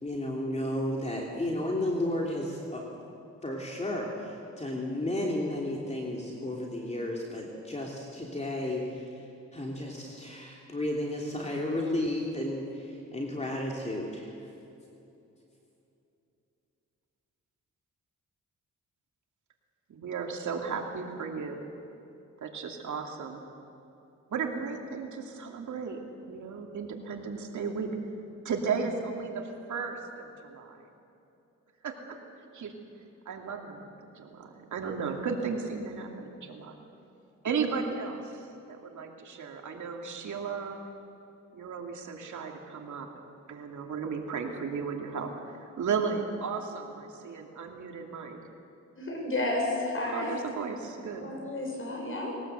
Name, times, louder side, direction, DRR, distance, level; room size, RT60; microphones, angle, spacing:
voice 1, 0.0-2.8 3.4-14.5, left 1 dB, 20° left, -2 dB, 3.1 m, -33 dB
voice 2, 19.9-21.6 22.4-23.4 24.3-26.0 26.3-27.9 28.4-30.8 31.8-32.2 32.5-32.7 33.3-33.9 34.1-36.7 37.4-40.8 41.5-43.1 43.5-48.4 50.1-51.3, right 5 dB, 75° right, 2 dB, 2.6 m, -35 dB
voice 3, 49.0-50.5 51.2-52.3, left 2 dB, 45° left, 0 dB, 6.8 m, -31 dB
21.0 x 19.5 x 8.1 m, 2.8 s
cardioid pair, 90°, 30 cm